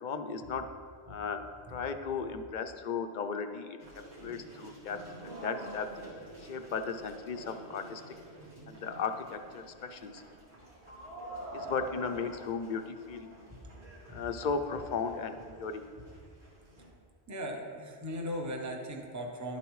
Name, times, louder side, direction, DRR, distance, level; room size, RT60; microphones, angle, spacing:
voice 1, 0.0-0.7 1.1-1.4 1.7-3.8 4.2-5.9 6.5-8.0 8.7-10.2 11.5-13.3 14.1-15.8, left 5 dB, 55° left, 7 dB, 0.6 m, -36 dB
sound 1, 3.8-16.9, right 1 dB, 80° right, 2.4 m, -48 dB
voice 2, 17.3-19.6, equal, 20° right, 2 dB, 0.7 m, -38 dB
11.5 x 7.1 x 3.1 m, 2.1 s
omnidirectional pair, 1.1 m